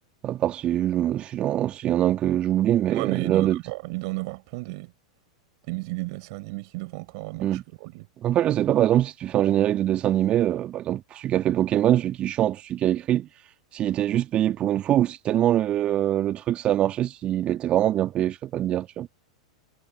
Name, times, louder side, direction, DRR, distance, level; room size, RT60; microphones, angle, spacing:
voice 1, 0.2-3.6 7.4-7.6 8.2-13.3 13.7-19.1, right 12 dB, 35° right, 2.2 m, -23 dB
voice 2, 2.9-4.9 5.7-8.1, right 26 dB, 50° right, 5.8 m, -33 dB
figure-of-eight pair, 95°, 3 cm